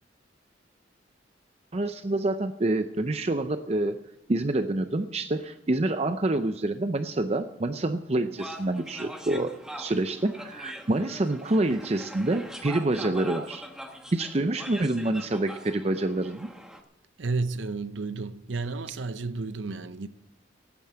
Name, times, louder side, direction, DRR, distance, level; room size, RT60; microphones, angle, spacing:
voice 1, 1.7-4.0 4.3-13.7 14.1-16.5, right 2 dB, 35° right, 0.5 m, -27 dB
sound 1, 8.4-16.8, equal, 5° right, 1.1 m, -42 dB
voice 2, 17.2-20.1, right 3 dB, 85° right, 0.7 m, -32 dB
13.0 x 9.2 x 8.6 m
head